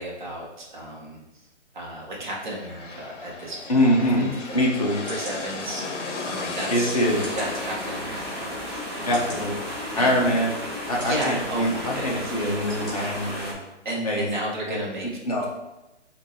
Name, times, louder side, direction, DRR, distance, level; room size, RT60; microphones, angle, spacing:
voice 1, 0.0-1.5 1.7-4.7 5.0-7.0 7.4-9.4 9.9-10.2 10.9-12.3 13.8-15.1, right 1 dB, 40° right, -4 dB, 1.2 m, -34 dB
sound 1, 2.4-10.1, left 3 dB, 80° left, 0.9 m, -36 dB
voice 2, 3.7-4.9 6.7-7.2 9.0-9.5 10.0-10.5 10.9-13.6 14.0-14.3 14.7-14.8 15.3-15.5, equal, 30° left, -3 dB, 0.7 m, -23 dB
sound 2, 4.4-4.5 5.1-5.4 6.1-6.2 7.2-7.5 8.2-8.3 9.1-9.4 10.2-10.3 11.0-11.3 12.0-12.2 12.7-12.9 13.4-13.5, equal, ahead, 1.1 m, -41 dB
sound 3, 7.0-13.5, left 1 dB, 20° right, 0.8 m, -33 dB
6.3 x 2.6 x 2.8 m, 1.0 s
hypercardioid pair, 180°, 36 cm